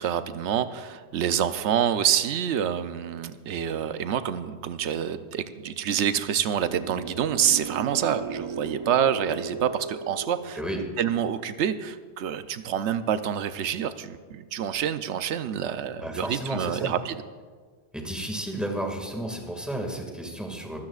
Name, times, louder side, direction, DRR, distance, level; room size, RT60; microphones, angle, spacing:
voice 1, 0.0-10.6 11.0-17.2, right 9 dB, 80° right, 11 dB, 1.0 m, -27 dB
sound 1, 6.6-11.7, right 4 dB, 55° right, 0.3 m, -37 dB
voice 2, 16.0-16.9 17.9-20.8, right 1 dB, ahead, 1 dB, 1.9 m, -32 dB
22.5 x 15.5 x 2.4 m, 1.5 s
omnidirectional pair, 1.1 m